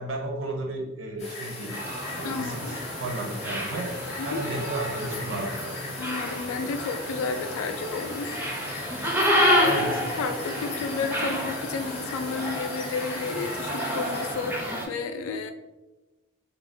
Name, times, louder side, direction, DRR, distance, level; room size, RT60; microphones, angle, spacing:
voice 1, 0.0-1.8 2.1-2.6 3.0-3.9 4.2-5.7 9.6-10.0, right 2 dB, 65° right, 1 dB, 0.6 m, -33 dB
sound 1, 1.2-14.3, left 3 dB, 30° left, 0.7 m, -39 dB
sound 2, 1.7-14.9, equal, 10° right, 0.4 m, -29 dB
voice 2, 2.2-2.8 4.2-4.4 6.0-8.4 9.4-15.5, left 4 dB, 80° left, 7 dB, 0.3 m, -32 dB
2.4 x 2.1 x 3.6 m, 1.1 s
head